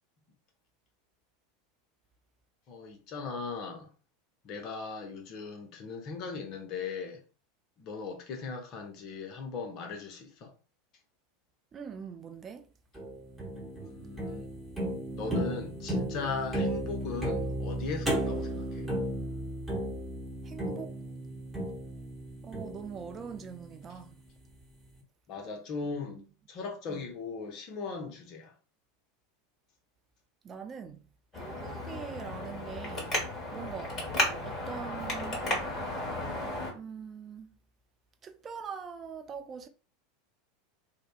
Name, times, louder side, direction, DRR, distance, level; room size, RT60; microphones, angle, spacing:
voice 1, 2.7-3.9 4.4-7.2 7.8-10.5 13.8-14.5 15.1-18.9 25.3-26.2 26.5-28.5, left 4 dB, 45° left, 0.7 m, -38 dB
voice 2, 11.7-12.7 20.4-20.9 22.4-24.1 26.9-27.1 30.4-31.1 31.3-33.2 33.5-34.0 34.4-35.5 36.7-37.5 38.2-39.7, right 6 dB, 30° right, 0.4 m, -43 dB
sound 1, 12.9-24.1, right 1 dB, 5° right, 1.1 m, -35 dB
Traffic noise roadway noise, 31.3-36.7, left 1 dB, 30° left, 1.3 m, -34 dB
2.6 x 2.1 x 2.3 m
figure-of-eight pair, 80°, 0 cm